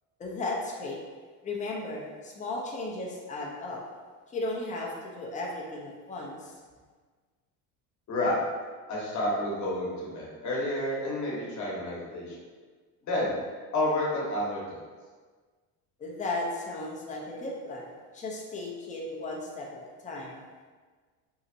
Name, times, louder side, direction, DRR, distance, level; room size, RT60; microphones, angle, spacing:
voice 1, 0.2-1.0 1.4-3.9 4.3-6.5 16.0-20.4, left 2 dB, 20° left, -2 dB, 0.5 m, -35 dB
voice 2, 8.1-8.4 8.9-12.3 13.0-13.3 13.7-14.8, left 1 dB, 45° left, -4 dB, 1.0 m, -30 dB
2.7 x 2.0 x 2.6 m, 1.5 s
supercardioid pair, 100°, 39 cm